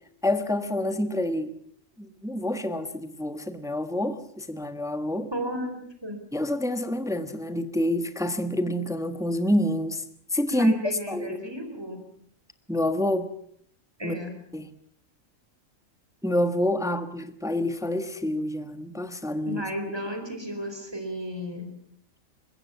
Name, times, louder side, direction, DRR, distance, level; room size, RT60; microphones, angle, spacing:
voice 1, 0.2-1.5 2.0-5.3 6.3-10.0 10.3-10.7 11.1-11.4 12.7-13.3 14.0-14.2 14.5-14.7 16.2-19.6, left 1 dB, 5° right, 10 dB, 1.3 m, -27 dB
voice 2, 5.3-6.2 10.5-12.0 14.0-14.3 19.5-21.7, equal, 20° right, 5 dB, 4.3 m, -33 dB
23.5 x 21.0 x 7.1 m, 0.64 s
omnidirectional pair, 1.4 m